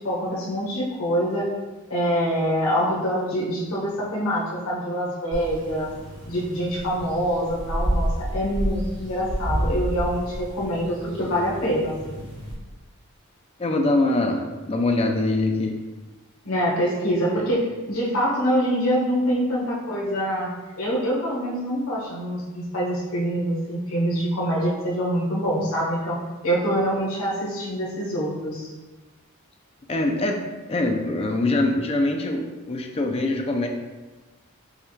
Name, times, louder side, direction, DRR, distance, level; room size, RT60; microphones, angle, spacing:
voice 1, 0.0-1.5 1.9-5.9 6.3-12.2 16.4-20.5 20.8-26.2 26.4-28.7, equal, 85° left, -5 dB, 1.2 m, -25 dB
sound 1, 5.3-12.5, equal, 60° right, 1.4 m, -30 dB
voice 2, 13.6-15.8 29.9-30.4 30.7-33.7, left 2 dB, 30° left, 3 dB, 0.4 m, -23 dB
5.5 x 2.3 x 3.1 m, 1.2 s
head